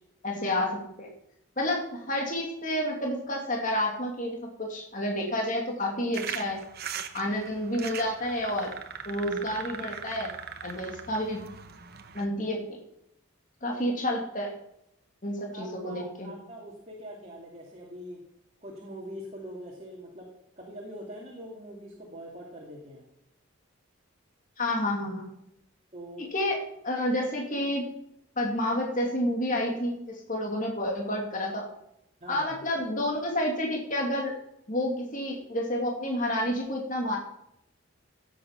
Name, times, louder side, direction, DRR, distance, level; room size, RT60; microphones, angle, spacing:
voice 1, 0.2-1.1 1.6-6.6 7.1-8.7 9.0-10.3 10.6-11.5 12.1-12.6 13.6-14.6 15.2-16.3 24.6-25.3 26.2-26.6 26.8-27.8 28.4-31.7 32.3-34.3 34.7-37.2, left 1 dB, 40° left, 0 dB, 2.5 m, -29 dB
sound 1, 6.1-12.2, right 7 dB, 45° right, 1.1 m, -40 dB
voice 2, 15.5-18.2 18.6-20.3 20.6-23.0 25.9-26.3 32.2-32.6, equal, 30° right, -2 dB, 2.5 m, -43 dB
16.0 x 8.5 x 5.9 m, 0.79 s
head